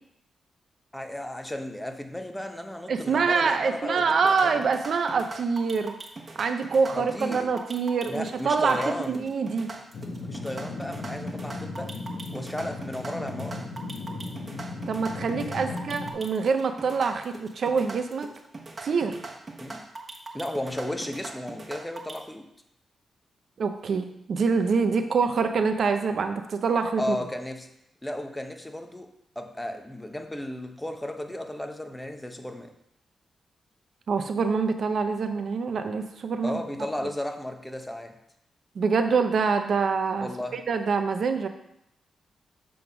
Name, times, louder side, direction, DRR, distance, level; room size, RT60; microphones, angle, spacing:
voice 1, 0.9-4.6 7.0-7.5 8.1-9.3 10.3-12.0 12.3-13.7 15.7-15.8 19.5-19.8 20.3-22.5 27.0-27.7 28.0-32.7 36.4-38.2 40.2-40.6, left 1 dB, 10° left, 5 dB, 0.8 m, -34 dB
voice 2, 2.9-6.0 6.4-9.7 14.9-18.3 18.8-19.2 23.6-27.2 34.1-36.6 38.8-41.5, right 5 dB, 60° right, 7 dB, 0.7 m, -25 dB
sound 1, 4.2-22.2, right 3 dB, 30° right, 1.2 m, -41 dB
sound 2, 9.9-16.1, left 3 dB, 65° left, 1.2 m, -36 dB
7.8 x 3.6 x 6.0 m, 0.77 s
cardioid pair, 95°, 0 cm